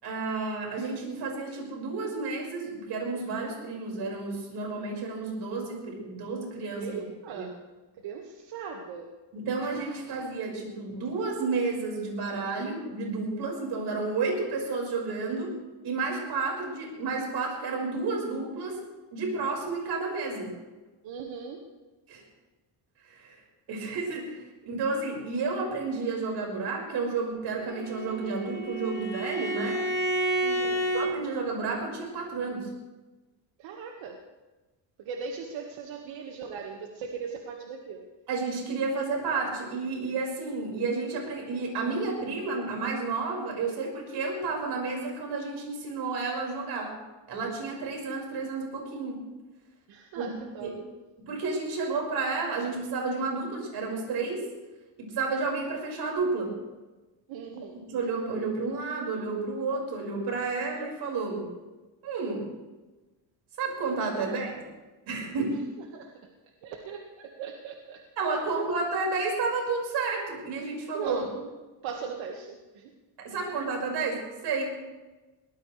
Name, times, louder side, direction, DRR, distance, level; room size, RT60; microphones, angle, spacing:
voice 1, 0.0-7.0 7.3-7.5 9.3-15.5 15.8-18.8 19.1-20.5 22.1-22.2 23.0-23.4 23.7-29.8 30.9-32.7 38.3-46.9 47.3-49.2 50.2-50.3 50.6-50.7 51.2-54.4 55.0-56.5 57.9-61.5 62.0-62.5 63.6-64.5 65.1-65.6 68.2-71.2 73.2-74.7, right 4 dB, 60° right, 0 dB, 5.5 m, -31 dB
voice 2, 6.8-7.6 7.9-9.1 21.0-21.6 30.4-30.9 33.6-34.2 35.0-38.1 49.9-50.7 57.3-57.8 64.2-64.5 65.3-65.4 65.8-68.0 70.9-71.5 71.8-72.9, right 6 dB, 85° right, 2 dB, 1.8 m, -39 dB
Bowed string instrument, 27.6-31.1, right 1 dB, 20° left, 2.5 m, -30 dB
22.5 x 18.5 x 3.3 m, 1.2 s
cardioid pair, 160°, 45 cm